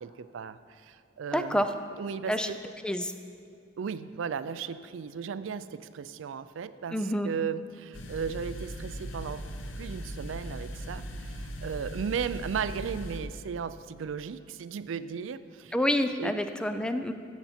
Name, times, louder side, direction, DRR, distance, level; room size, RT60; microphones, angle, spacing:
voice 1, 0.0-1.7 2.0-2.6 3.8-9.4 9.8-15.8 16.2-16.3, right 6 dB, 90° right, 13 dB, 0.4 m, -36 dB
voice 2, 1.3-1.7 2.3-2.5 2.8-3.1 6.9-7.3 15.7-17.1, equal, 5° left, 8 dB, 0.4 m, -28 dB
sound 1, 7.9-13.2, equal, 80° left, 0.8 m, -39 dB
14.5 x 7.0 x 4.3 m, 2.4 s
head